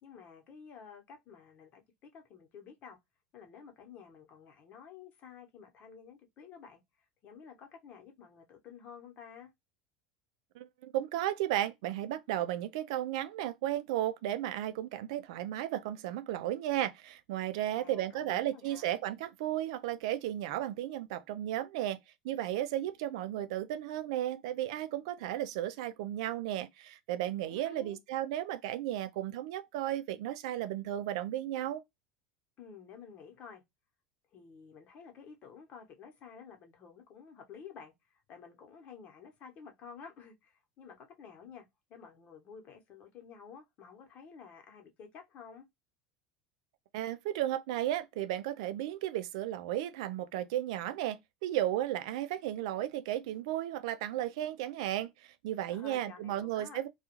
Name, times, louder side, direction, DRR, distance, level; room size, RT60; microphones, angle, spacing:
voice 1, 0.0-3.0 3.3-6.8 7.2-9.5 17.6-18.9 27.4-28.0 32.6-33.6 34.3-41.6 41.9-45.7 55.7-56.8, left 6 dB, 50° left, 1.0 m, -52 dB
voice 2, 10.6-22.0 22.2-31.8 46.9-56.9, right 13 dB, 70° right, 0.4 m, -34 dB
2.4 x 2.3 x 2.8 m
hypercardioid pair, 90°, 3 cm